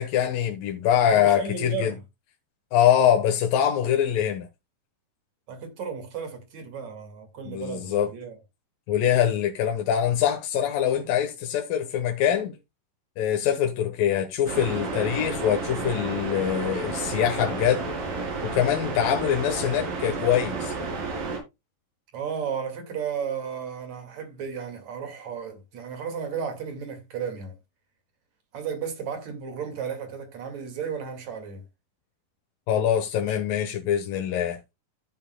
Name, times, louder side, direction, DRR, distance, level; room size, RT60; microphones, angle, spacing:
voice 1, 0.0-1.9 2.7-4.5 7.5-8.1 8.9-12.6 13.2-17.9 18.4-20.9 32.7-34.6, left 10 dB, 80° left, 2.9 m, -24 dB
voice 2, 1.1-2.0 5.5-8.4 22.1-27.5 28.5-31.6 33.3-33.4, right 6 dB, 55° right, 3.4 m, -34 dB
sound 1, 14.5-21.4, right 3 dB, 85° right, 5.3 m, -31 dB
14.5 x 7.8 x 2.3 m
omnidirectional pair, 4.0 m